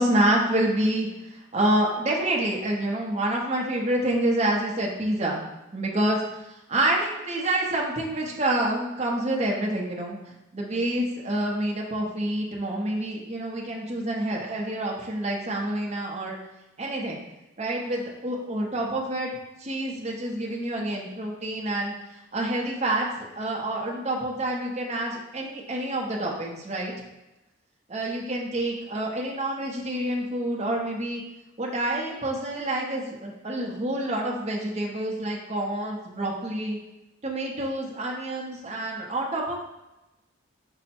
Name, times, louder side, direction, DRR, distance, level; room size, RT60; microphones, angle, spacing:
voice 1, 0.0-5.4 5.7-6.2 6.7-16.4 16.8-17.2 17.6-19.3 19.6-23.1 23.3-26.9 27.9-31.2 31.6-36.8 37.2-39.6, right 1 dB, 30° right, -2 dB, 0.6 m, -27 dB
5.4 x 2.1 x 4.2 m, 0.96 s
head